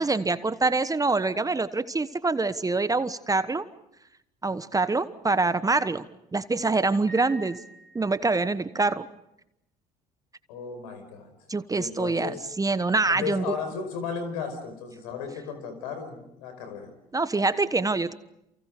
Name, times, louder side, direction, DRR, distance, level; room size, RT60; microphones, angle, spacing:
voice 1, 0.0-3.6 4.4-6.1 6.3-7.6 7.9-9.1 11.5-13.6 17.1-18.1, right 3 dB, 15° right, 14 dB, 1.2 m, -25 dB
Piano, 7.1-8.5, right 3 dB, 35° left, 6.6 m, -46 dB
voice 2, 10.5-11.3 11.7-12.4 13.1-16.9, left 6 dB, 70° left, 8 dB, 5.1 m, -35 dB
29.5 x 29.0 x 5.1 m, 0.82 s
figure-of-eight pair, 60°, 20 cm